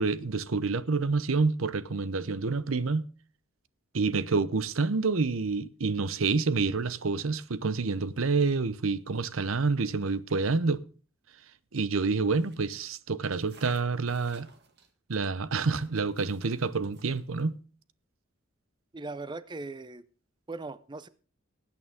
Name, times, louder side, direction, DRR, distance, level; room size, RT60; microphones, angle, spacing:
voice 1, 0.0-3.1 3.9-10.8 11.7-14.5 15.1-17.6, right 4 dB, 85° right, 0.8 m, -28 dB
sound 1, 12.3-12.9 13.4-14.9 15.5-17.5, right 4 dB, 55° right, 1.9 m, -55 dB
voice 2, 18.9-20.0 20.5-21.1, right 3 dB, 20° right, 0.5 m, -39 dB
19.5 x 8.6 x 3.6 m
head